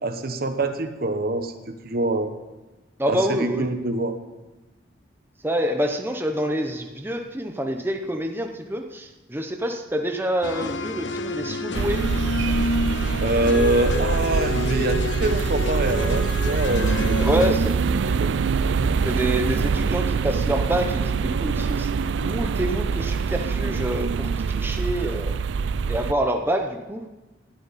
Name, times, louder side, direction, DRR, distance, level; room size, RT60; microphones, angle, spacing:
voice 1, 0.0-2.3 3.1-4.2 13.2-17.1 18.0-18.3, right 2 dB, 55° right, 8 dB, 1.1 m, -25 dB
voice 2, 3.0-3.7 5.4-12.0 17.2-17.8 19.0-21.9 22.2-25.3 25.9-27.0, right 1 dB, 10° right, 4 dB, 0.8 m, -27 dB
sound 1, 10.4-17.5, left 2 dB, 75° left, 0.8 m, -28 dB
sound 2, 11.7-26.1, right 5 dB, 75° right, 0.4 m, -24 dB
19.5 x 12.0 x 4.2 m, 1.1 s
head